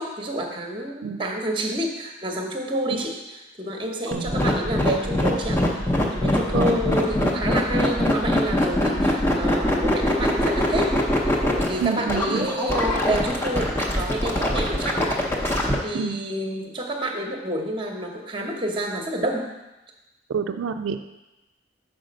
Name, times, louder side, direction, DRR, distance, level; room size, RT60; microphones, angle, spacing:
voice 1, 0.0-5.6 6.1-11.0 11.3-15.1 15.8-19.5, right 1 dB, 25° right, 2 dB, 0.8 m, -28 dB
sound 1, 4.1-15.7, left 1 dB, 10° left, 0.7 m, -22 dB
voice 2, 11.8-12.5 15.9-16.2 20.3-21.0, right 6 dB, 85° right, 7 dB, 0.4 m, -27 dB
6.2 x 4.8 x 5.1 m, 1.0 s
head